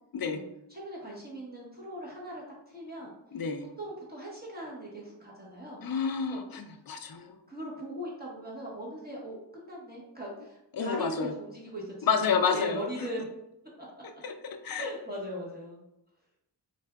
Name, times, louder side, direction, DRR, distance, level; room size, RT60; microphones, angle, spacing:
voice 1, 0.7-3.1 3.8-5.8 6.3-6.4 7.5-13.2 14.8-15.8, equal, 20° right, -5 dB, 1.1 m, -40 dB
voice 2, 3.3-3.7 5.8-7.4 10.7-11.3 12.0-13.1 14.0-14.9, left 6 dB, 50° left, 8 dB, 0.5 m, -30 dB
4.3 x 2.4 x 2.3 m, 0.87 s
cardioid pair, 50°, 45 cm